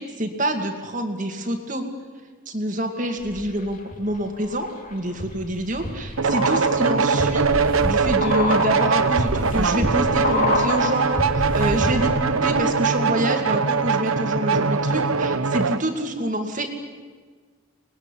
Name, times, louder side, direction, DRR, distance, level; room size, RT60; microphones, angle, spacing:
voice 1, 0.0-1.8 2.5-16.7, right 1 dB, 35° right, 4 dB, 2.3 m, -27 dB
sound 1, 3.2-4.0 4.4-12.3 12.5-12.6, left 1 dB, 40° left, 3.0 m, -28 dB
sound 2, 6.2-15.8, right 5 dB, 80° right, 1.1 m, -22 dB
25.5 x 20.0 x 10.0 m, 1.5 s
head